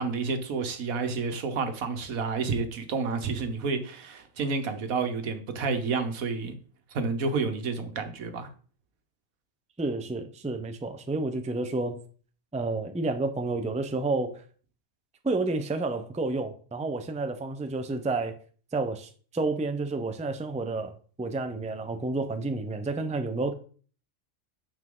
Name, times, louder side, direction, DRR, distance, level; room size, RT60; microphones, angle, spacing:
voice 1, 0.0-6.6 6.9-8.5, right 4 dB, 90° right, 1.5 m, -30 dB
voice 2, 9.8-12.0 12.5-14.4 15.2-18.4 18.7-23.5, right 3 dB, 10° right, 0.4 m, -30 dB
9.2 x 4.7 x 3.8 m
omnidirectional pair, 1.4 m